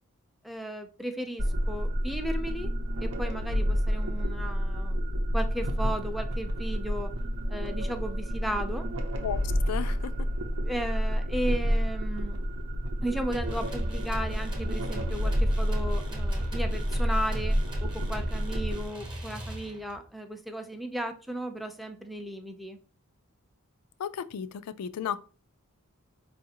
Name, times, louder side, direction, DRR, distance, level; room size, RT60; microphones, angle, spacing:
voice 1, 0.4-2.7 3.0-5.0 5.3-7.1 7.5-8.9 10.6-12.4 13.0-22.8, equal, ahead, 0.4 m, -35 dB
sound 1, 1.4-18.8, equal, 75° right, 0.7 m, -29 dB
voice 2, 9.7-10.1 24.0-25.2, left 8 dB, 90° left, 0.3 m, -33 dB
sound 2, 13.3-20.0, right 1 dB, 20° right, 0.8 m, -38 dB
4.6 x 2.5 x 2.8 m
head